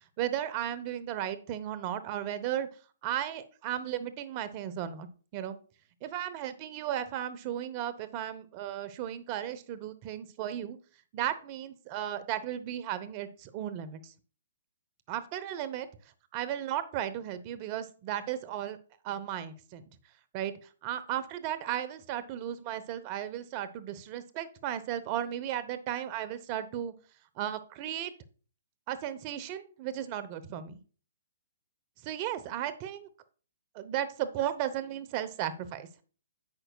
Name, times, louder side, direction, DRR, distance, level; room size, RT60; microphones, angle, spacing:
voice 1, 0.0-2.7 3.0-5.1 5.3-5.6 6.0-10.8 11.1-14.1 15.1-15.9 16.3-18.8 19.0-19.8 20.3-20.5 20.8-26.9 27.4-28.1 28.9-30.8 32.0-33.1 33.7-35.9, right 11 dB, 35° right, 14 dB, 0.9 m, -35 dB
10.5 x 7.8 x 2.3 m, 0.39 s
hypercardioid pair, 135°, 0 cm